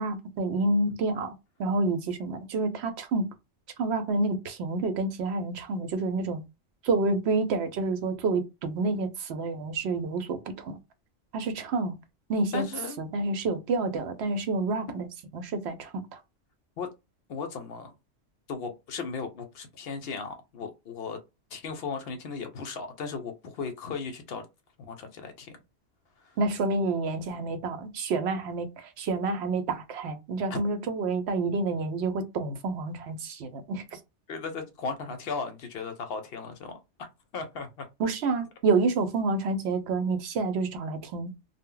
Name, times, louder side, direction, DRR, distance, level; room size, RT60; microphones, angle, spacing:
voice 1, 0.0-1.3 1.6-3.3 3.8-6.4 6.8-10.8 11.3-11.9 12.3-12.6 13.0-15.1 15.3-16.2 26.4-34.0 38.0-41.3, right 3 dB, 70° right, 0.8 m, -28 dB
voice 2, 12.5-13.0 16.8-16.9 17.3-17.9 18.5-21.2 21.5-24.4 24.9-25.5 26.2-26.4 30.5-30.6 34.3-36.8 37.3-37.9, left 5 dB, 65° left, 0.7 m, -36 dB
2.0 x 2.0 x 3.6 m
omnidirectional pair, 1.2 m